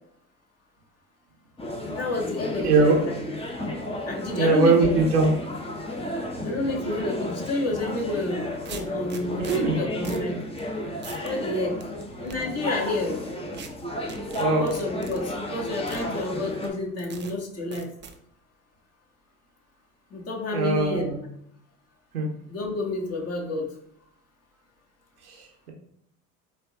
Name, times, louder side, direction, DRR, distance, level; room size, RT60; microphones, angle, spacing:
sound 1, 1.6-16.7, left 1 dB, 15° left, 0.9 m, -33 dB
voice 1, 1.8-3.1 4.1-5.1 6.4-10.3 11.2-11.8 12.2-13.2 14.4-17.9 20.1-21.1 22.5-23.7, left 2 dB, 35° left, -2 dB, 1.6 m, -29 dB
voice 2, 2.6-3.0 4.3-5.3 6.4-6.6 9.4-9.8 14.4-14.6 20.5-21.2 22.1-22.3 25.2-25.7, right 3 dB, 90° right, 1 dB, 1.1 m, -21 dB
sound 2, 7.9-8.0 8.7-9.6 10.0-10.3 10.6-10.7 11.0-11.3 11.8-12.4 13.5-13.7 14.1-15.2 15.9-16.1 16.6-16.7 17.1-17.3 17.7-18.2, right 5 dB, 25° right, 0.6 m, -41 dB
4.4 x 2.5 x 3.5 m, 0.71 s
hypercardioid pair, 75°, 44 cm